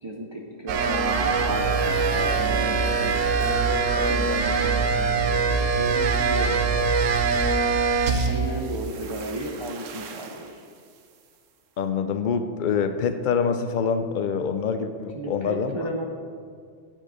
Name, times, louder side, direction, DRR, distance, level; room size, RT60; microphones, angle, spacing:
voice 1, 0.0-3.3 3.9-7.4 8.0-10.5 15.2-16.0, right 1 dB, 40° right, 1 dB, 0.4 m, -34 dB
sound 1, 0.7-8.6 8.8-10.4, right 4 dB, 80° right, 1.1 m, -23 dB
Keyboard (musical), 3.4-5.9 6.5-7.7, left 1 dB, 5° left, 0.8 m, -43 dB
voice 2, 11.8-15.8, left 6 dB, 65° left, 9 dB, 0.4 m, -25 dB
10.5 x 4.5 x 4.9 m, 2.2 s
omnidirectional pair, 1.3 m